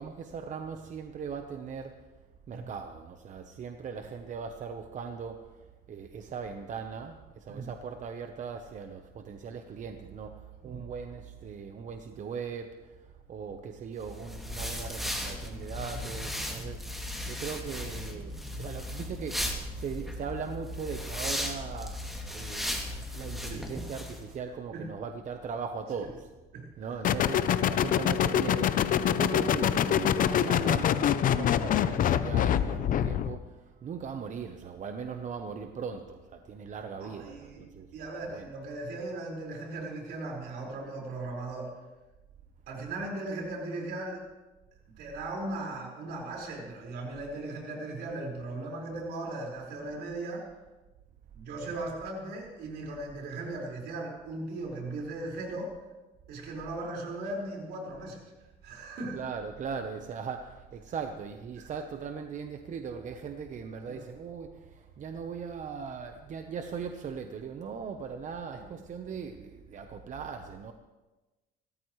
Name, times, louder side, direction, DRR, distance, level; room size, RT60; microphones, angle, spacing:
voice 1, 0.0-2.1 2.5-26.4 26.8-37.9 38.3-38.5 51.7-51.9 59.1-70.7, right 6 dB, 45° right, 1.0 m, -39 dB
sound 1, 14.0-24.2, left 1 dB, ahead, 2.7 m, -36 dB
sound 2, 27.0-33.4, left 9 dB, 55° left, 0.7 m, -25 dB
voice 2, 37.0-37.6 37.9-41.7 42.7-44.2 45.0-50.5 51.3-55.7 56.3-58.2 58.6-59.2 61.6-61.7 63.9-64.1 68.6-68.7, right 2 dB, 80° right, 5.2 m, -38 dB
27.0 x 14.0 x 3.3 m
cardioid pair, 110°, 17 cm